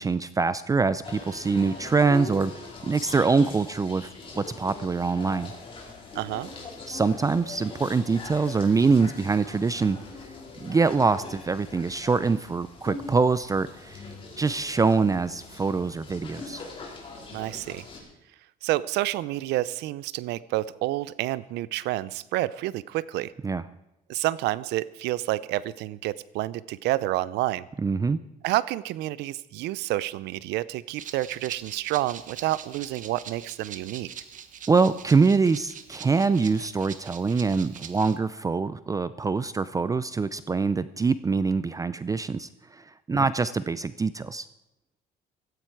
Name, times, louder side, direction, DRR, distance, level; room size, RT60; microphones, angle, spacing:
voice 1, 0.0-2.5 2.9-4.1 4.4-5.5 6.9-10.3 10.6-14.1 14.4-16.6 23.4-23.6 27.8-28.2 34.7-44.5, right 4 dB, 20° right, 15 dB, 0.5 m, -24 dB
sound 1, 1.0-18.0, left 3 dB, 30° left, 4.9 m, -42 dB
voice 2, 6.1-6.5 17.3-17.8 18.6-23.3 24.1-27.6 28.4-34.1 43.1-43.3, right 16 dB, 85° right, 19 dB, 0.6 m, -29 dB
Rattle (instrument), 31.0-38.2, right 8 dB, 50° right, 1.2 m, -43 dB
17.0 x 15.0 x 4.7 m, 0.89 s
cardioid pair, 110°, 17 cm